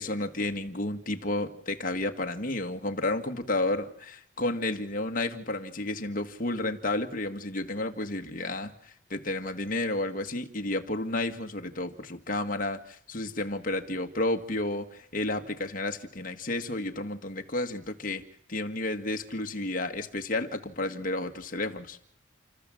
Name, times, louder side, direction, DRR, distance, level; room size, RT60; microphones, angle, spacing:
voice 1, 0.0-18.2 18.5-22.0, left 2 dB, 45° left, 5 dB, 1.8 m, -31 dB
30.0 x 14.0 x 7.8 m, 0.67 s
head